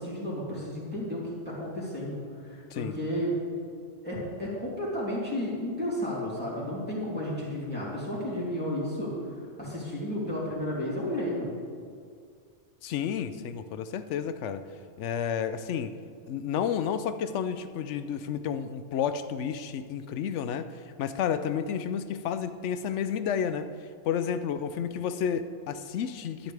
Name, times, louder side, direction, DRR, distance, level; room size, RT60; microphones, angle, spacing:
voice 1, 0.0-2.2 2.5-3.4 4.0-9.1 9.6-11.5, equal, 10° left, -8 dB, 3.2 m, -32 dB
voice 2, 12.8-14.7 15.0-15.9 16.3-20.7 21.0-23.7 24.0-26.5, left 8 dB, 80° left, 11 dB, 0.9 m, -31 dB
12.5 x 10.0 x 3.4 m, 2.2 s
omnidirectional pair, 1.2 m